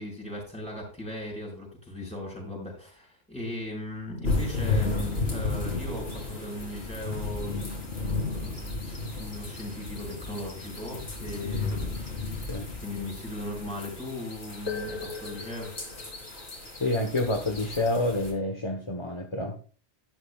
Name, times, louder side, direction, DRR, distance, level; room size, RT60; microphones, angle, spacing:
voice 1, 0.0-7.8 8.0-12.5 12.8-15.7, left 1 dB, 5° left, -3 dB, 5.4 m, -38 dB
sound 1, 4.2-18.3, left 3 dB, 80° left, 3.2 m, -33 dB
voice 2, 16.8-19.6, left 2 dB, 30° left, 3 dB, 1.2 m, -28 dB
12.5 x 11.5 x 2.4 m, 0.38 s
omnidirectional pair, 1.1 m